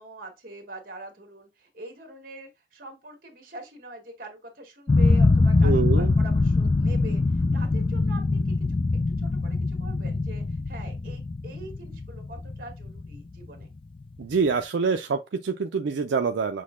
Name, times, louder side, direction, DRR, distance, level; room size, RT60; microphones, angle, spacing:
voice 1, 0.0-8.4 9.2-13.7, right 1 dB, 50° right, 1.6 m, -43 dB
sound 1, 4.9-13.7, left 3 dB, 30° left, 0.3 m, -23 dB
voice 2, 5.6-6.1 14.2-16.6, right 5 dB, 80° right, 0.4 m, -25 dB
6.4 x 2.2 x 3.6 m
head